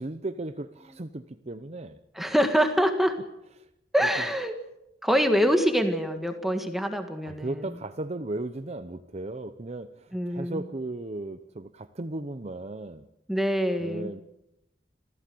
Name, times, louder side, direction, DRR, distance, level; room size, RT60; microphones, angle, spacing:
voice 1, 0.0-2.0 7.2-13.1 13.8-14.2, right 2 dB, 40° right, 0.8 m, -36 dB
voice 2, 2.2-3.2 3.9-4.5 5.0-7.6 10.1-10.6 13.3-14.1, equal, ahead, 1.8 m, -25 dB
27.5 x 15.5 x 7.8 m
head